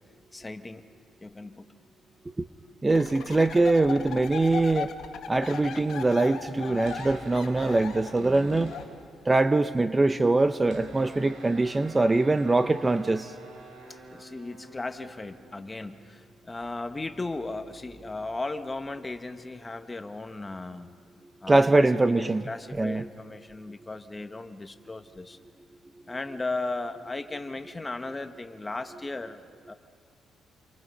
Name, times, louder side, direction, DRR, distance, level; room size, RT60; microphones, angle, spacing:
voice 1, 0.3-0.8 1.2-1.7 8.2-8.5 13.9-20.9 21.4-21.9 22.2-25.4 26.1-29.4 29.7-29.8, left 2 dB, 20° left, 8 dB, 1.3 m, -36 dB
voice 2, 2.8-4.9 5.3-8.7 9.2-13.3 21.5-22.4 22.8-23.1, right 2 dB, 20° right, 11 dB, 0.7 m, -23 dB
sound 1, 2.9-8.8, left 7 dB, 70° left, 1.7 m, -37 dB
sound 2, 6.9-9.5 9.7-9.8 10.0-19.4, right 2 dB, 85° right, 4.3 m, -50 dB
29.5 x 23.5 x 5.5 m, 2.1 s
cardioid pair, 90°, 0 cm